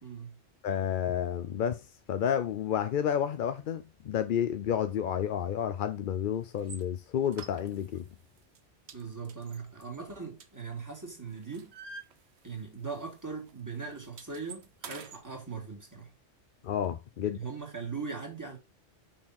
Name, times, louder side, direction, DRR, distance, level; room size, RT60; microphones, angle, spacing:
voice 1, 0.0-0.4 8.9-11.7 12.4-16.1 17.2-18.6, right 5 dB, 15° right, 2.3 m, -40 dB
voice 2, 0.6-1.8 2.1-8.1 16.6-17.4, left 9 dB, 60° left, 0.6 m, -30 dB
sound 1, 6.6-6.8 7.3-8.1 8.4-8.6 8.9-10.9 11.3-12.7 13.0-13.2 13.5-15.2, right 5 dB, 65° right, 1.1 m, -48 dB
6.1 x 4.3 x 4.1 m
omnidirectional pair, 1.3 m